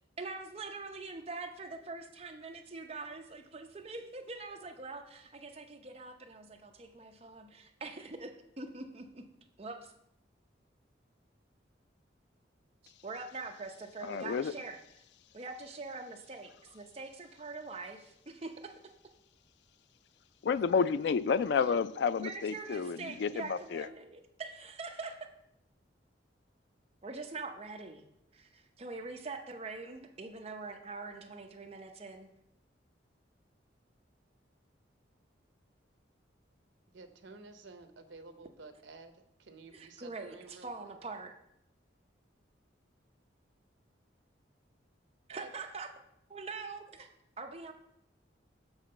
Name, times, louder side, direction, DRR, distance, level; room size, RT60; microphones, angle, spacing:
voice 1, 0.2-9.2 9.6-9.9 13.0-15.0 15.3-18.8 22.1-25.2 27.0-28.1 28.3-32.3 39.7-41.3 45.3-45.9 46.3-47.1 47.4-47.7, right 3 dB, 30° right, 4 dB, 0.7 m, -44 dB
voice 2, 14.0-14.5 20.4-23.9, left 5 dB, 65° left, 15 dB, 0.3 m, -30 dB
voice 3, 36.9-40.9 45.3-45.5, right 3 dB, 75° right, 8 dB, 0.7 m, -52 dB
7.2 x 3.9 x 6.6 m, 0.78 s
head